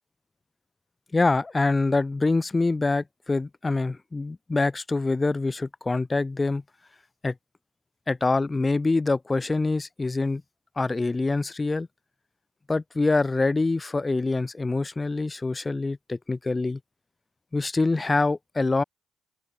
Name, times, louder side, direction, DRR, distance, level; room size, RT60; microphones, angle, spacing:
voice 1, 1.1-6.6 7.2-7.3 8.1-10.4 10.8-11.9 12.7-16.8 17.5-18.8, left 3 dB, 20° left, 2.2 m, -25 dB
open air
cardioid pair, 105°, 0 cm